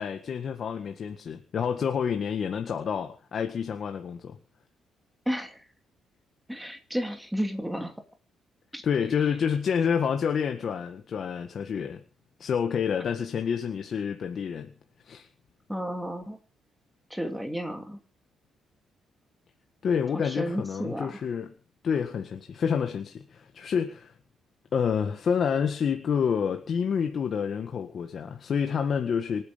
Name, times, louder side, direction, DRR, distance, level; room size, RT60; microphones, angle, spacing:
voice 1, 0.0-4.4 8.8-12.0 12.4-14.7 15.1-15.3 19.8-21.5 21.8-24.1 24.7-29.4, left 7 dB, 40° left, 1.7 m, -28 dB
voice 2, 5.3-5.6 6.5-8.0 8.7-8.8 15.7-16.4 17.1-18.0 20.1-21.2, equal, ahead, 2.7 m, -32 dB
26.5 x 9.7 x 5.2 m
cardioid pair, 165°, 0 cm